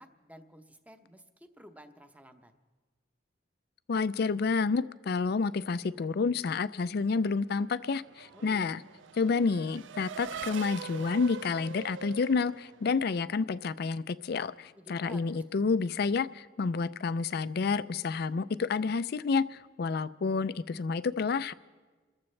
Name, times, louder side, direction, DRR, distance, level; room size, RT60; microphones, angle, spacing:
voice 1, 0.0-2.5 8.3-8.7 14.8-15.4, equal, 10° right, 7 dB, 0.8 m, -52 dB
voice 2, 3.9-8.8 9.2-21.5, left 4 dB, 55° left, 15 dB, 0.4 m, -29 dB
Race car auto racing / Accelerating revving vroom, 7.3-13.4, right 7 dB, 85° right, 0.4 m, -44 dB
28.0 x 14.0 x 3.3 m, 1.3 s
head